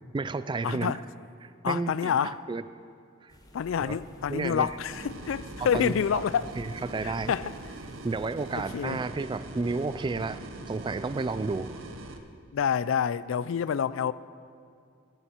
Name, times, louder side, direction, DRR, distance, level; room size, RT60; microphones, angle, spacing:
voice 1, 0.1-0.9 1.4-2.6 3.2-3.3 3.8-4.0 4.3-4.7 5.7-6.2 6.6-7.3 8.0-11.8, right 3 dB, 25° right, 0.3 m, -32 dB
voice 2, 0.6-1.0 1.6-2.4 3.5-6.5 7.0-7.5 8.5-9.0 12.5-14.1, left 7 dB, 70° left, 0.3 m, -28 dB
sound 1, 3.3-8.7, equal, 20° left, 1.1 m, -50 dB
sound 2, 4.9-12.2, right 2 dB, 70° right, 0.9 m, -42 dB
16.5 x 11.0 x 4.5 m
head